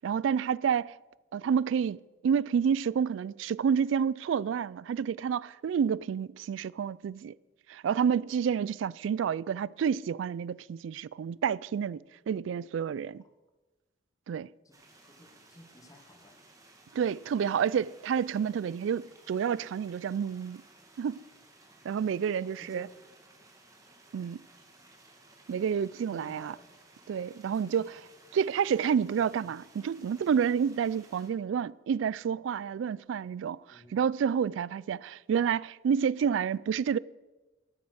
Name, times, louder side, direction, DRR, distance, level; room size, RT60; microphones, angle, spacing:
voice 1, 0.0-0.9 1.3-7.3 7.7-12.0 12.3-13.2 14.3-14.5 16.9-20.6 21.0-21.2 21.8-22.9 24.1-24.4 25.5-26.5 27.1-27.9 28.3-37.0, right 7 dB, 80° right, 0.3 m, -29 dB
sound 1, 14.7-31.3, right 2 dB, 20° right, 1.8 m, -58 dB
voice 2, 15.0-16.4 22.6-22.9 26.1-26.7 27.5-27.8 33.7-34.1, left 1 dB, 20° left, 1.4 m, -53 dB
13.0 x 8.5 x 6.3 m
head